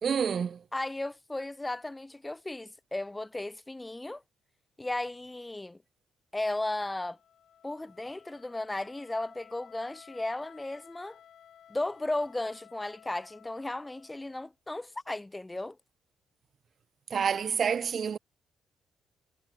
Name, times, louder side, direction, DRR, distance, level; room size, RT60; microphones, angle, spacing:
voice 1, 0.0-0.6 17.1-18.2, right 7 dB, 50° right, 0.5 m, -28 dB
voice 2, 0.7-4.2 4.8-5.8 6.3-7.2 7.6-11.2 11.7-15.8, left 2 dB, 15° left, 1.7 m, -35 dB
Wind instrument woodwind instrument, 6.5-14.5, left 9 dB, 60° left, 3.8 m, -56 dB
supercardioid pair, 75°, 0 cm